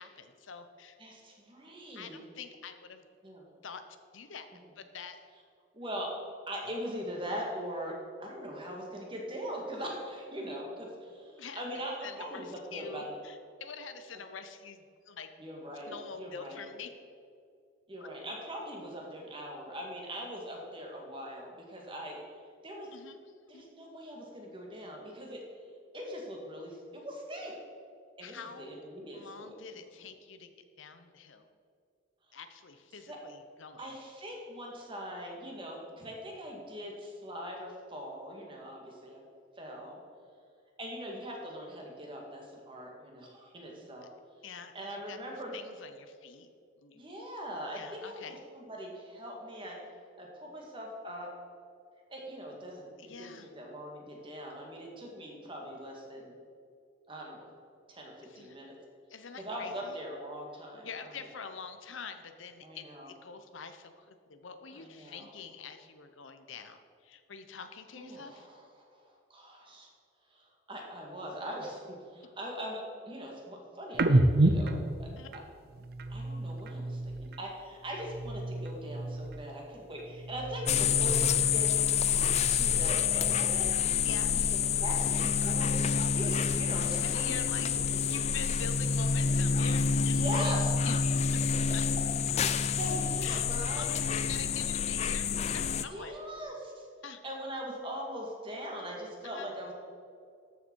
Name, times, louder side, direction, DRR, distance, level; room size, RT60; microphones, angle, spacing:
voice 1, 0.0-1.0 1.9-3.0 3.6-3.8 4.1-4.5 4.8-5.2 11.4-11.6 12.0-15.3 15.9-16.9 18.0-18.1 22.9-23.2 23.5-23.6 28.2-28.9 29.1-30.5 30.8-31.5 32.3-33.9 44.4-46.5 46.8-47.0 47.7-48.4 53.0-53.5 58.2-58.6 59.1-60.0 60.8-68.5 75.2-75.3 84.0-84.4 87.0-90.2 90.8-91.4 91.7-91.8 93.2-93.5 93.7-96.1 97.0-97.2 99.2-99.5, left 6 dB, 75° left, 8 dB, 0.8 m, -45 dB
voice 2, 1.0-2.2 3.2-3.4 5.7-6.2 6.5-7.9 8.2-13.2 15.4-16.6 17.9-22.2 22.6-22.9 23.5-25.4 25.9-27.5 28.2-29.5 32.3-32.4 33.1-33.2 33.8-39.2 39.6-40.0 40.8-44.1 44.7-45.5 46.9-49.8 50.2-51.3 52.1-56.3 57.1-57.6 57.9-58.8 59.4-61.1 62.6-63.1 64.7-65.3 67.9-69.9 70.3-75.4 76.1-81.7 82.5-83.7 84.3-84.4 84.8-88.3 90.0-90.9 92.3-93.9 95.7-96.9 97.2-99.7, equal, 25° right, -1 dB, 1.9 m, -41 dB
sound 1, 73.9-77.5 77.8-79.7 79.9-81.8 82.2-84.0, right 1 dB, 50° right, 0.6 m, -31 dB
sound 2, 80.7-95.8, left 6 dB, 30° left, 0.3 m, -28 dB
13.5 x 6.9 x 4.6 m, 2.4 s
head